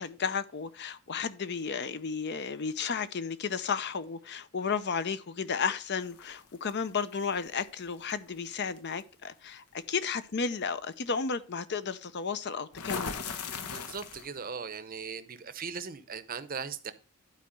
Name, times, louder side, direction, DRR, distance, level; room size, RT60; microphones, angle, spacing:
voice 1, 0.0-13.1, left 5 dB, 50° left, 0.6 m, -33 dB
sound 1, 6.1-6.7 8.1-8.3 8.8-9.0 12.7-14.4, left 5 dB, 80° left, 1.1 m, -37 dB
voice 2, 13.7-16.9, right 6 dB, 40° right, 0.7 m, -39 dB
11.5 x 4.6 x 5.1 m
head